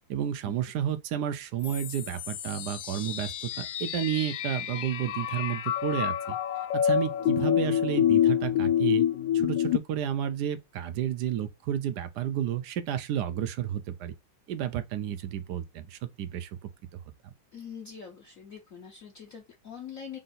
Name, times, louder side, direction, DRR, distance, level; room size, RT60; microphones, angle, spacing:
voice 1, 0.1-6.4 6.8-9.0 9.3-14.1 14.5-17.0, right 10 dB, 75° right, 1.0 m, -31 dB
sound 1, 1.6-9.8, left 10 dB, 75° left, 1.1 m, -27 dB
voice 2, 17.5-20.2, left 7 dB, 55° left, 1.0 m, -43 dB
3.7 x 2.6 x 4.0 m
omnidirectional pair, 2.2 m